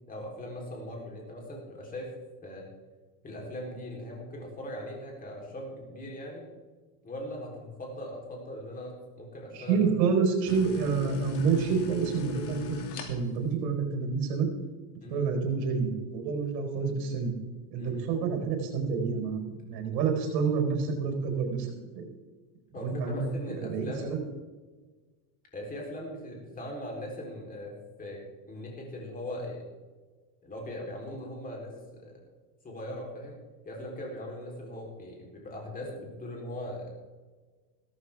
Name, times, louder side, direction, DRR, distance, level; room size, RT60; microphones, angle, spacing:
voice 1, 0.1-2.1 2.4-2.6 3.2-6.5 7.0-9.8 15.0-15.3 17.8-18.0 22.7-24.1 25.5-27.7 28.0-28.2 28.5-29.6 30.4-32.2 32.6-33.4 33.6-37.1, left 1 dB, 15° left, -1 dB, 3.8 m, -40 dB
voice 2, 9.5-14.5 15.1-17.3 17.7-22.1 22.7-23.3 23.7-24.2, right 5 dB, 85° right, 3 dB, 4.5 m, -28 dB
sound 1, 10.4-13.5, left 5 dB, 70° left, 2.7 m, -38 dB
16.5 x 14.0 x 3.6 m, 1.4 s
supercardioid pair, 145°, 48 cm